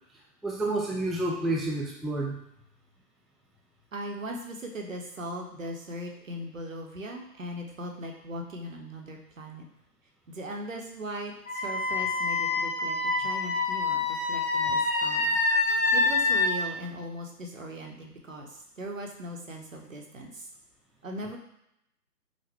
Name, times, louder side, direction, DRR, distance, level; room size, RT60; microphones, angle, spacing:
voice 1, 0.4-2.4 14.6-14.7, right 2 dB, ahead, -2 dB, 0.3 m, -29 dB
voice 2, 3.9-9.7 10.3-15.4 15.9-20.5 21.0-21.4, equal, 55° right, 1 dB, 0.7 m, -39 dB
Wind instrument woodwind instrument, 11.5-16.5, left 3 dB, 55° left, 1.0 m, -26 dB
5.0 x 2.1 x 3.3 m, 0.80 s
figure-of-eight pair, 170°, 49 cm